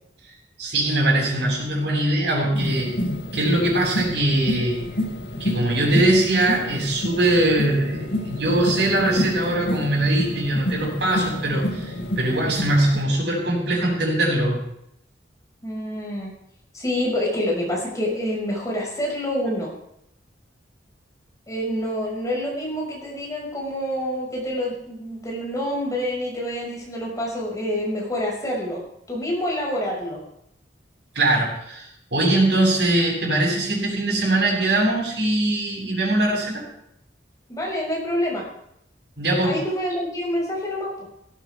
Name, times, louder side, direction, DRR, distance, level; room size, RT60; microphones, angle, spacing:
voice 1, 0.6-2.9 3.3-4.8 5.4-14.6 31.1-36.6 39.2-39.6, right 1 dB, 70° right, -1 dB, 7.6 m, -21 dB
sound 1, 2.5-13.0, left 1 dB, 85° left, 5.5 m, -29 dB
voice 2, 15.6-16.3 16.7-19.7 21.5-30.2 37.5-38.4 39.4-40.9, equal, 20° left, -3 dB, 6.1 m, -27 dB
17.5 x 17.5 x 3.6 m, 0.75 s
head